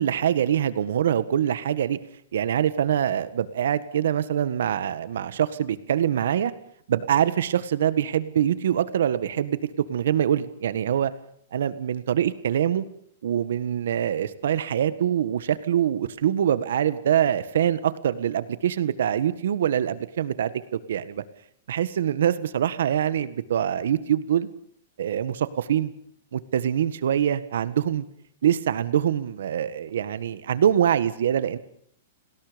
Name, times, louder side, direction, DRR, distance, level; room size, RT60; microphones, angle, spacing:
voice 1, 0.0-2.0 2.3-6.5 6.9-11.1 11.5-12.8 13.2-21.2 21.7-24.5 25.0-25.9 26.3-28.0 28.4-31.6, right 9 dB, 65° right, 14 dB, 1.6 m, -24 dB
29.5 x 20.5 x 5.2 m, 0.64 s
supercardioid pair, 180°, 0 cm